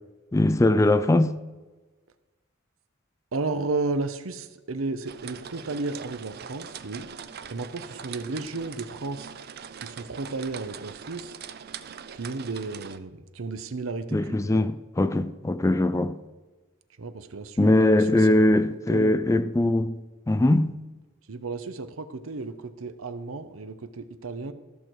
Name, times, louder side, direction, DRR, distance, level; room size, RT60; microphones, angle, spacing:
voice 1, 0.3-1.3 14.1-16.2 17.6-20.0 20.3-20.8, left 1 dB, 15° left, 0.3 m, -21 dB
voice 2, 3.3-7.1 7.5-9.3 9.8-11.4 12.1-14.6 17.0-19.2 21.3-24.5, right 3 dB, 80° right, 0.7 m, -33 dB
sound 1, 5.1-13.0, right 7 dB, 50° right, 0.5 m, -42 dB
14.0 x 6.4 x 4.5 m
head